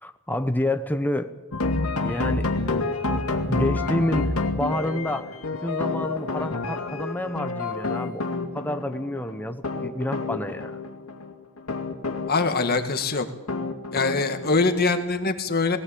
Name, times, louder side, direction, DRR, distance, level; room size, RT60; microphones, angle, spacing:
voice 1, 0.0-1.4 2.0-2.5 2.8-5.3 5.6-10.7, left 1 dB, 10° left, 8 dB, 0.9 m, -29 dB
sound 1, 1.5-15.0, left 3 dB, 80° left, 2.3 m, -29 dB
voice 2, 12.3-13.3 13.9-15.8, left 3 dB, 45° left, 7 dB, 1.9 m, -23 dB
19.5 x 18.5 x 8.6 m, 1.1 s
head